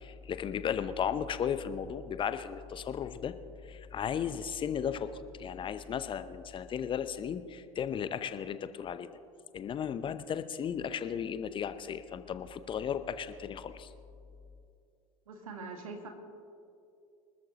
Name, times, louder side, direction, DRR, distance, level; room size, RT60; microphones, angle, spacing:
voice 1, 0.0-3.3 3.6-9.1 9.5-13.9, left 8 dB, 30° left, 12 dB, 0.7 m, -35 dB
voice 2, 15.3-16.1, right 4 dB, 75° right, 4 dB, 2.0 m, -43 dB
25.0 x 13.5 x 3.0 m, 2.5 s
figure-of-eight pair, 75°, 18 cm